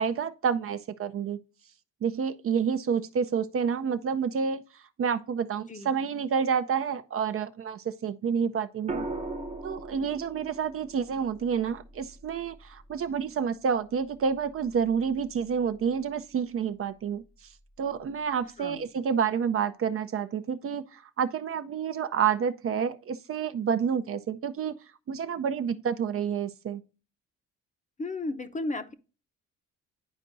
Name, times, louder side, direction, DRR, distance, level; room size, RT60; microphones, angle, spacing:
voice 1, 0.0-1.4 2.0-4.6 5.0-9.1 9.6-17.2 17.8-24.8 25.1-26.8, right 7 dB, 45° right, 0.6 m, -29 dB
sound 1, 8.9-13.0 14.7-15.1, right 2 dB, 20° right, 0.9 m, -39 dB
voice 2, 28.0-28.9, left 2 dB, 25° left, 0.7 m, -33 dB
10.5 x 4.4 x 2.6 m
cardioid pair, 90°, 30 cm